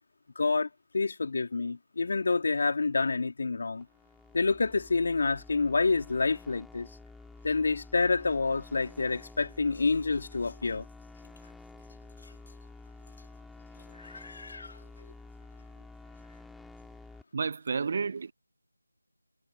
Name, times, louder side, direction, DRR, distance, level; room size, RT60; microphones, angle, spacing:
voice 1, 0.3-0.7 0.9-3.9 4.3-6.9 7.4-10.8 13.9-14.8, left 4 dB, 40° left, 3.2 m, -28 dB
sound 1, 3.8-17.2, left 3 dB, ahead, 3.1 m, -50 dB
voice 2, 17.3-18.3, right 5 dB, 30° right, 0.7 m, -31 dB
figure-of-eight pair, 165°, 0 cm